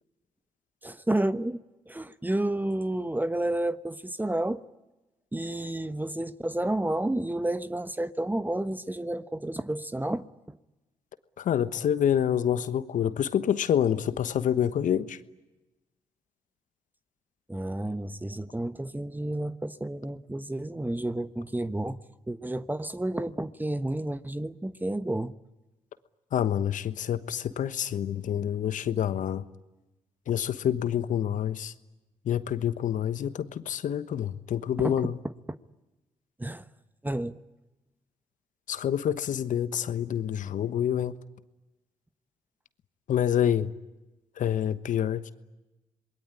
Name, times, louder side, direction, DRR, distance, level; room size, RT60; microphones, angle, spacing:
voice 1, 0.8-1.6 1.9-4.6 5.3-10.6 17.5-22.0 22.3-25.3 34.8-35.1 36.4-36.7 37.0-37.4, right 1 dB, 15° right, 1.2 m, -31 dB
voice 2, 11.4-15.2 26.3-29.4 30.3-31.7 32.2-35.2 38.7-41.1 43.1-43.7 44.4-45.3, left 9 dB, 65° left, 1.2 m, -27 dB
27.5 x 21.0 x 9.8 m
hypercardioid pair, 45°, 14 cm